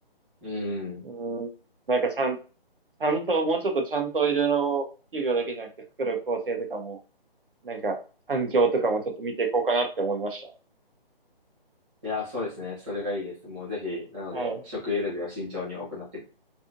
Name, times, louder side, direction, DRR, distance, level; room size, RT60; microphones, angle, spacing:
voice 1, 0.4-1.0 12.0-16.2, left 3 dB, 10° right, -5 dB, 0.7 m, -33 dB
voice 2, 1.0-1.5 1.9-2.4 3.0-4.9 5.1-5.7 6.0-7.0 7.6-8.0 8.3-10.5 14.3-14.6, right 4 dB, 60° right, 4 dB, 0.8 m, -26 dB
2.6 x 2.5 x 2.5 m, 0.34 s
figure-of-eight pair, 150°, 30 cm